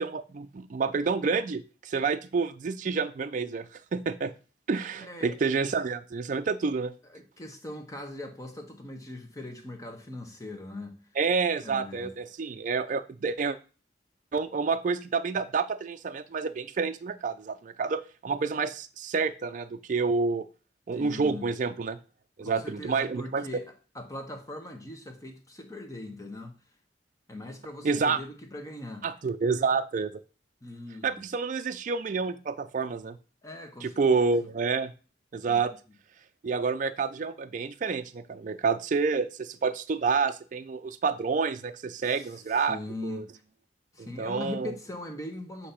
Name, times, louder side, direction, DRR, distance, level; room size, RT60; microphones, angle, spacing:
voice 1, 0.0-4.3 4.7-6.9 11.2-13.6 14.3-20.5 20.9-22.0 22.4-23.5 27.8-28.2 29.0-30.2 31.0-33.2 33.8-34.9 35.3-35.7 36.4-43.2 44.2-44.7, right 4 dB, 45° right, 0.4 m, -29 dB
voice 2, 5.0-5.4 7.0-11.0 11.6-12.1 20.9-21.4 22.4-26.5 27.3-29.1 30.6-31.2 33.4-34.2 35.5-35.7 42.0-43.3 43.9-45.7, left 2 dB, 20° left, 1.1 m, -41 dB
8.4 x 2.9 x 5.6 m
head